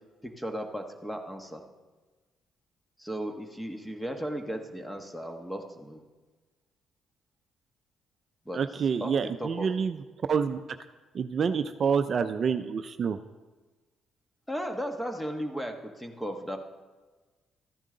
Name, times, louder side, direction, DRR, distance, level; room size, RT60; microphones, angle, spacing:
voice 1, 0.2-1.6 3.0-6.0 8.4-8.6 9.0-9.7 14.5-16.6, equal, 5° left, 5 dB, 1.3 m, -35 dB
voice 2, 8.5-10.0 10.3-10.6 11.1-13.2, right 6 dB, 50° right, 9 dB, 0.4 m, -27 dB
13.5 x 10.0 x 3.9 m, 1.3 s
cardioid pair, 90°, 0 cm